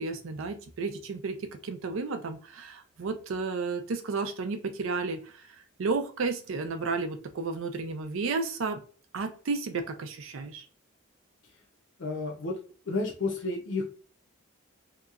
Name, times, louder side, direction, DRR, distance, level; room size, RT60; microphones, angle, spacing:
voice 1, 0.0-5.5 5.8-8.8 9.1-10.7, right 4 dB, 70° right, 7 dB, 0.4 m, -32 dB
voice 2, 12.0-12.6 12.9-13.8, left 3 dB, 60° left, -2 dB, 0.5 m, -31 dB
2.8 x 2.3 x 2.3 m, 0.42 s
head